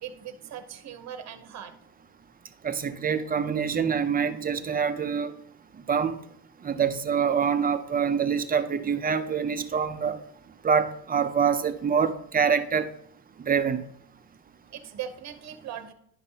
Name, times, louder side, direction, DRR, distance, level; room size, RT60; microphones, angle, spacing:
voice 1, 0.0-1.8 14.7-15.9, right 9 dB, 45° right, 0.9 m, -39 dB
voice 2, 2.6-5.3 5.9-6.2 6.6-10.2 10.6-12.9 13.4-13.8, right 6 dB, 25° right, 0.5 m, -25 dB
11.0 x 5.3 x 2.8 m
cardioid pair, 120°, 37 cm